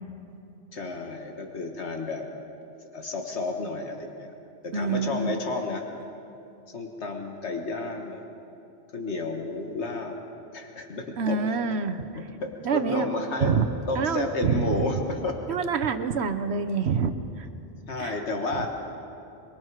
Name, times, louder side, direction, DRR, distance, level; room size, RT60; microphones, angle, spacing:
voice 1, 0.7-2.2 2.7-4.3 4.6-5.8 6.7-8.3 8.9-10.2 10.5-11.4 12.4-13.6 13.9-15.4 17.9-18.7, left 3 dB, 80° left, 3 dB, 1.8 m, -31 dB
voice 2, 4.7-5.3 11.2-12.0 12.6-13.1 13.4-13.6 14.0-14.9 15.5-17.5 18.0-18.2, right 5 dB, 75° right, 9 dB, 1.1 m, -26 dB
23.5 x 23.5 x 4.8 m, 2.8 s
omnidirectional pair, 1.1 m